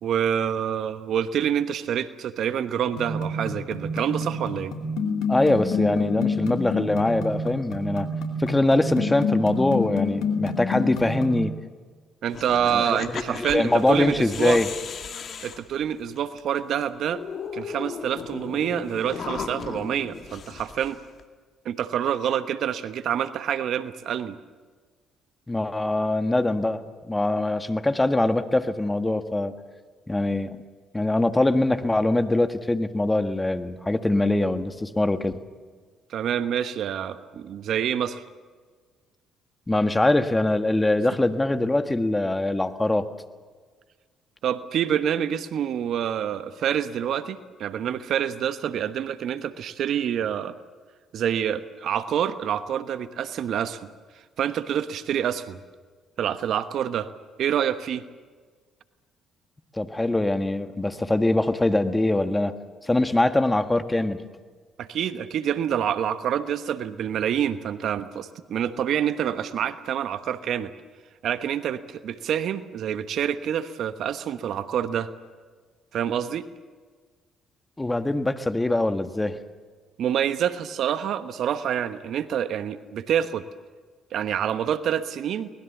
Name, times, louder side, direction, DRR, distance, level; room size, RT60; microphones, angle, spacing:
voice 1, 0.0-4.7 12.2-14.6 15.4-17.2 17.5-21.0 21.6-24.4 36.1-38.2 44.4-50.6 51.1-53.8 54.4-55.6 56.2-57.1 57.4-58.0 64.8-70.7 71.2-75.1 75.9-76.4 80.0-83.4 84.1-85.5, right 9 dB, 65° right, 12 dB, 1.1 m, -27 dB
sound 1, 3.0-11.5, left 3 dB, 75° left, 2.7 m, -28 dB
voice 2, 5.3-8.1 8.4-11.5 12.7-14.7 25.5-29.5 30.1-30.6 30.9-35.4 39.7-43.1 59.7-62.5 62.8-64.2 77.8-79.4, left 2 dB, 15° left, 9 dB, 1.6 m, -23 dB
sound 2, 12.3-16.4 16.8-16.9 17.1-21.2, left 6 dB, 55° left, 2.1 m, -36 dB
23.5 x 20.0 x 7.2 m, 1.5 s
hypercardioid pair, 55°, 0 cm